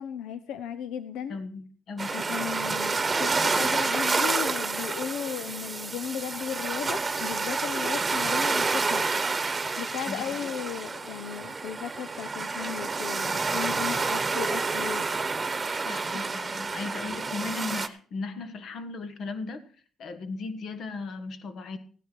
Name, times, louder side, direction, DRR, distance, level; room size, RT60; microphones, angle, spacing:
voice 1, 0.0-1.4 2.1-9.1 9.8-15.1, left 9 dB, 90° left, 12 dB, 0.7 m, -36 dB
voice 2, 1.3-2.4 10.1-10.5 15.8-19.6 20.0-21.8, left 3 dB, 65° left, 10 dB, 1.6 m, -37 dB
sound 1, 2.0-17.9, right 4 dB, 30° right, 1.1 m, -29 dB
16.0 x 10.5 x 4.6 m, 0.43 s
cardioid pair, 90°, 0 cm